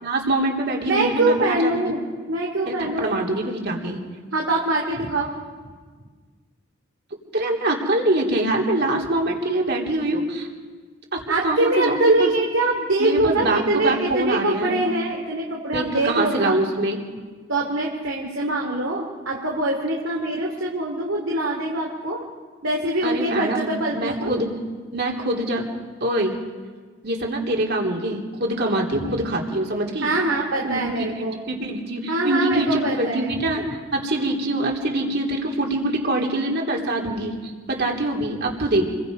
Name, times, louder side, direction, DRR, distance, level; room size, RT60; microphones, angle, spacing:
voice 1, 0.0-1.8 2.7-4.0 7.3-10.5 11.1-12.3 13.0-14.8 15.7-17.0 23.0-24.5 24.9-25.6 26.0-26.4 27.0-30.1 30.6-38.9, right 1 dB, 55° right, 0 dB, 3.4 m, -24 dB
voice 2, 0.9-2.0 2.3-3.2 4.3-5.3 11.3-16.6 17.5-22.2 22.6-24.4 28.9-29.2 30.0-31.4 32.1-33.4, right 2 dB, 70° right, -1 dB, 2.8 m, -23 dB
28.0 x 22.0 x 5.4 m, 1.5 s
head